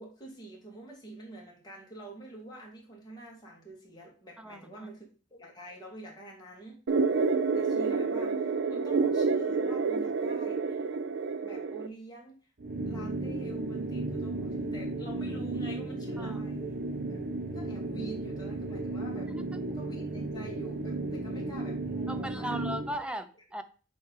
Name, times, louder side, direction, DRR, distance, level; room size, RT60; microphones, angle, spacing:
voice 1, 0.0-6.8 7.5-10.8 11.4-12.4 12.8-16.8 17.1-17.2 17.5-19.3 19.7-22.7, right 1 dB, 20° left, -3 dB, 2.4 m, -46 dB
voice 2, 4.4-4.9 16.2-16.5 19.3-19.6 22.1-23.6, equal, 5° right, 9 dB, 0.5 m, -38 dB
sound 1, 6.9-11.9, right 4 dB, 75° right, 0.5 m, -28 dB
sound 2, 12.6-23.0, right 2 dB, 55° right, 0.9 m, -34 dB
7.9 x 3.3 x 4.8 m, 0.37 s
head